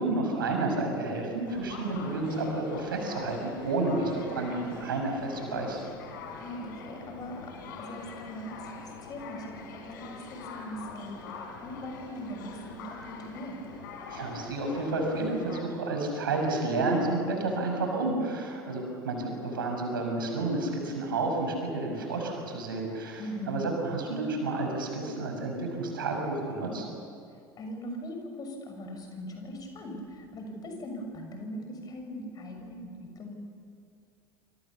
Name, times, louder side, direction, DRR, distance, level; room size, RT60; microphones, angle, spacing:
voice 1, 0.0-5.9 14.1-23.2 23.5-26.8, right 2 dB, 70° right, 2 dB, 6.1 m, -30 dB
sound 1, 1.4-15.6, left 5 dB, 65° left, 4.1 m, -44 dB
voice 2, 6.4-13.6 23.2-23.6 27.6-33.3, equal, 35° left, 4 dB, 6.4 m, -40 dB
27.5 x 26.5 x 7.2 m, 2.3 s
figure-of-eight pair, 70°, 12 cm